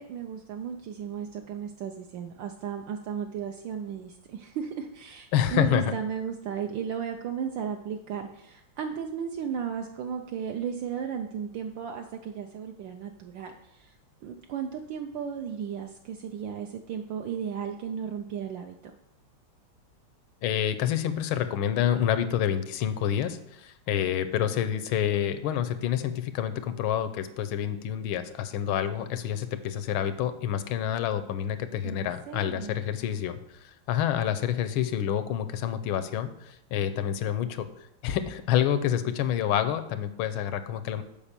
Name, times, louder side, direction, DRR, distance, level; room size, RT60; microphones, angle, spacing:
voice 1, 0.0-14.0 14.2-19.0 31.8-32.8, right 7 dB, 75° right, 4 dB, 1.2 m, -35 dB
voice 2, 5.3-5.9 20.4-37.7 38.0-41.0, left 10 dB, 90° left, 11 dB, 1.5 m, -28 dB
7.2 x 5.0 x 6.7 m, 0.82 s
omnidirectional pair, 2.2 m